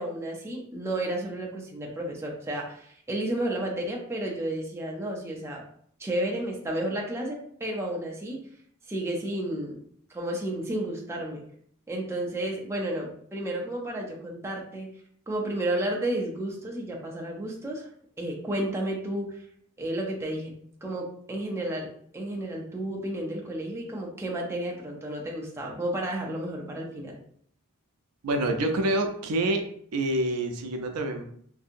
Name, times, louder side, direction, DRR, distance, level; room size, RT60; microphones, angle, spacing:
voice 1, 0.0-5.6 6.0-8.4 8.9-9.8 10.1-11.4 11.9-14.9 15.3-17.9 18.2-19.3 19.8-20.5 20.8-27.2, right 1 dB, 10° right, -1 dB, 0.4 m, -32 dB
voice 2, 28.2-29.6 29.9-31.2, right 1 dB, 85° right, 5 dB, 0.5 m, -27 dB
2.7 x 2.6 x 2.5 m, 0.63 s
head